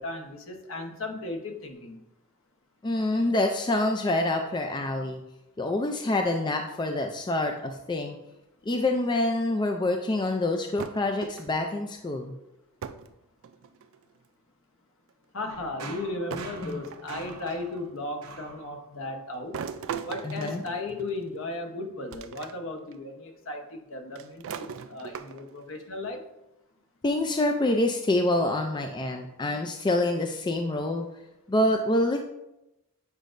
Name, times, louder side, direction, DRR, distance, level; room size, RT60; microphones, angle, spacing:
voice 1, 0.0-2.0 15.3-19.6 20.0-26.2, left 2 dB, 60° left, 4 dB, 1.0 m, -36 dB
voice 2, 2.8-5.2 5.6-8.2 8.7-12.3 16.6-16.8 20.2-20.6 27.0-31.1 31.5-32.2, left 1 dB, 20° left, 4 dB, 0.4 m, -26 dB
sound 1, 10.8-11.7 12.8-13.1 13.4-14.0 15.1-15.2 16.3-17.6 19.5-21.4 22.1-22.5 22.9-23.0 24.2-25.6, right 7 dB, 60° right, 0.4 m, -39 dB
sound 2, 15.5-19.3, right 3 dB, 75° right, 0.9 m, -44 dB
8.2 x 5.0 x 2.6 m, 0.92 s
head